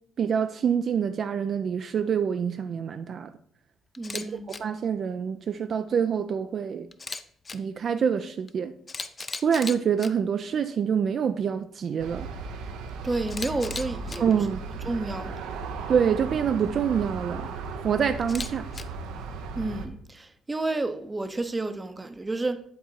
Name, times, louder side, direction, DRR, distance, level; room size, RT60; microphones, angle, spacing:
voice 1, 0.2-3.3 4.1-6.9 7.5-8.7 9.4-12.3 14.2-14.6 15.9-17.5 17.8-18.6, right 7 dB, 55° right, 0.3 m, -26 dB
Camera, 3.9-4.2 4.5-4.6 6.9-7.6 8.5-8.6 8.9-10.1 13.3-14.2 18.2-18.8, left 4 dB, 30° left, 0.5 m, -36 dB
voice 2, 4.0-4.6 13.0-14.4 14.8-15.4 19.6-22.6, right 2 dB, 20° right, 0.6 m, -31 dB
Aircraft, 12.0-19.9, right 4 dB, 85° right, 0.6 m, -36 dB
8.4 x 3.7 x 4.4 m
cardioid pair, 85°, 0 cm